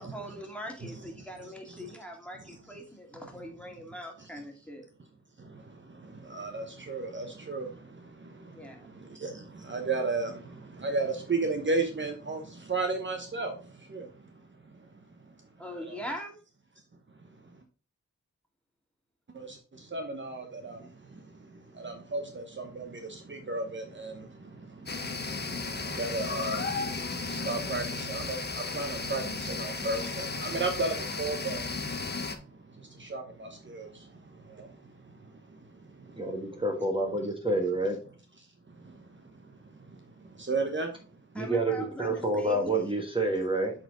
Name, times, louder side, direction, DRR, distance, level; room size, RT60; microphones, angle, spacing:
voice 1, 0.0-4.8 8.5-8.9 15.6-16.3 41.3-42.7, equal, 5° left, 2.2 m, -41 dB
voice 2, 5.4-14.1 15.9-16.0 19.3-31.6 32.8-35.1 35.5-35.6 36.0-36.2 38.8-39.1 39.9-40.9, right 3 dB, 40° right, 1.0 m, -35 dB
sound 1, 24.9-32.4, left 4 dB, 35° left, 0.9 m, -34 dB
voice 3, 36.2-38.0 41.3-43.7, right 2 dB, 15° right, 1.5 m, -28 dB
7.7 x 4.3 x 3.9 m
wide cardioid pair, 70°, 30 cm